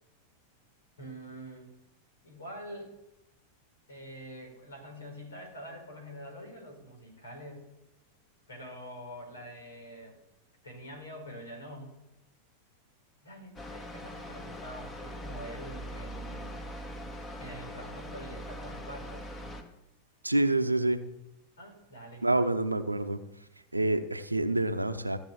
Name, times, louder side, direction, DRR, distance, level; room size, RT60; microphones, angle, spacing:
voice 1, 1.0-1.7 2.2-2.9 3.9-7.6 8.5-10.2 10.6-11.9 13.2-16.6 17.4-19.2 21.6-22.3, equal, 70° left, 3 dB, 5.0 m, -45 dB
sound 1, 13.6-19.6, equal, 20° left, 1.9 m, -41 dB
voice 2, 20.2-21.1 22.2-23.2 23.7-25.2, right 2 dB, 85° right, 10 dB, 0.8 m, -27 dB
14.5 x 7.2 x 7.2 m, 0.86 s
figure-of-eight pair, 90°, 0 cm